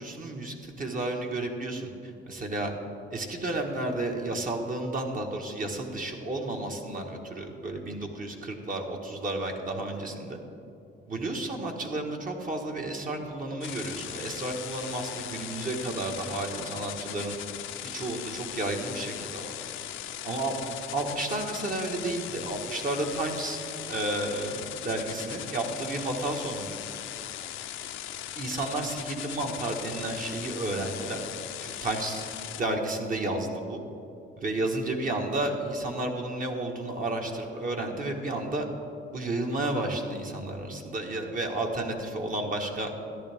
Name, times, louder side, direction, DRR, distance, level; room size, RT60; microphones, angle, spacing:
voice 1, 0.0-2.7 3.1-10.4 11.1-17.4 17.8-19.6 20.2-20.6 20.9-23.6 23.9-26.7 28.4-31.2 31.6-33.8 34.4-38.7 39.1-42.9, right 2 dB, 45° right, 2 dB, 1.6 m, -32 dB
sound 1, 13.6-32.6, left 11 dB, 80° left, 0.6 m, -39 dB
13.5 x 11.0 x 3.6 m, 2.6 s
cardioid pair, 90°, 20 cm